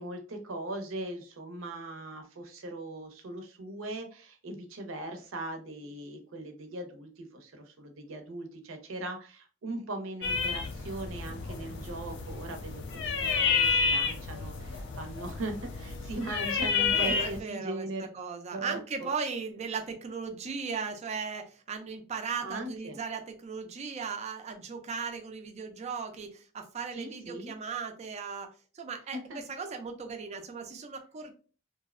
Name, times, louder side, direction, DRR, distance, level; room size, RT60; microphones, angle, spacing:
voice 1, 0.0-18.1 18.5-19.1 22.4-23.0 27.0-27.5 29.1-29.4, right 2 dB, 85° right, 5 dB, 0.6 m, -39 dB
sound 1, 10.2-17.4, left 5 dB, 65° left, 0.4 m, -30 dB
voice 2, 16.9-17.9 18.1-31.4, right 5 dB, 35° right, 6 dB, 0.4 m, -37 dB
2.6 x 2.0 x 2.4 m, 0.38 s
head